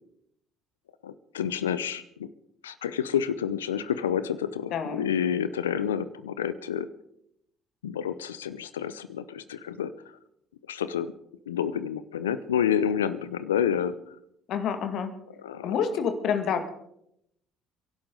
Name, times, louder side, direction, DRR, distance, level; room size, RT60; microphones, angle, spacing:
voice 1, 1.0-2.3 2.6-6.9 7.8-9.9 10.7-11.1 11.5-14.0 15.4-15.7, left 8 dB, 85° left, 15 dB, 0.7 m, -29 dB
voice 2, 4.7-5.0 14.5-15.1 15.6-16.7, left 7 dB, 60° left, 8 dB, 1.9 m, -28 dB
30.0 x 11.5 x 3.9 m, 0.76 s
hypercardioid pair, 55°, 0 cm